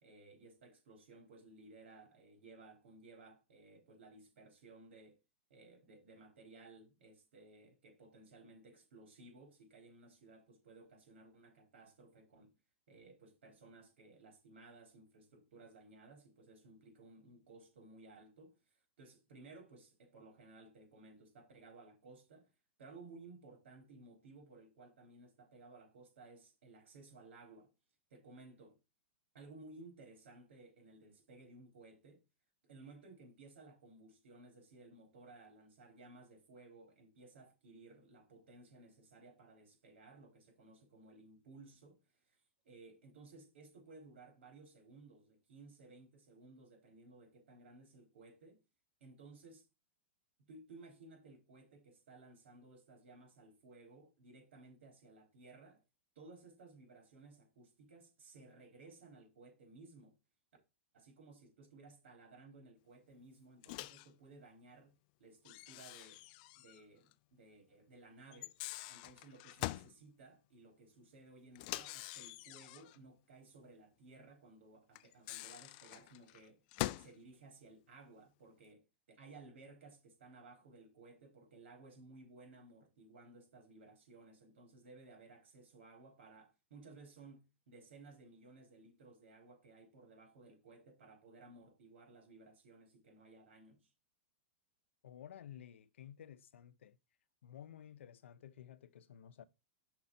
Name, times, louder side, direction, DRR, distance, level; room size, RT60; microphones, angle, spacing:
voice 1, 0.0-5.2 5.5-12.5 12.9-18.6 19.0-22.5 22.8-27.7 28.1-28.8 29.3-32.2 32.7-42.0 42.3-42.4 42.6-48.6 49.0-49.7 50.4-55.8 56.2-60.1 60.9-66.2 66.5-68.5 68.9-76.6 76.9-93.9, right 3 dB, 80° right, 3.8 m, -58 dB
Microwave oven, 63.6-64.1 65.4-66.8 67.1-67.2 68.3-69.9 71.5-73.0 75.0-77.1, left 19 dB, 45° left, 0.4 m, -44 dB
voice 2, 95.0-97.0 97.4-99.4, left 10 dB, 85° left, 0.7 m, -54 dB
6.0 x 4.3 x 5.3 m
hypercardioid pair, 145°, 6 cm